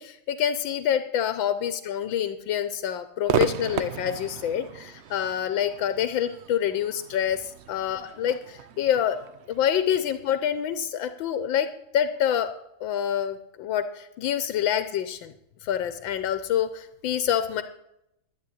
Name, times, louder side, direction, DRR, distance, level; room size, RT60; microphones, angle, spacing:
voice 1, 0.0-9.2 9.5-11.7 11.9-12.5 12.8-15.3 15.6-17.6, left 9 dB, 85° left, 10 dB, 1.5 m, -27 dB
Crowd / Fireworks, 3.3-10.6, right 8 dB, 90° right, 0.5 m, -34 dB
11.0 x 10.0 x 9.0 m, 0.82 s
omnidirectional pair, 2.0 m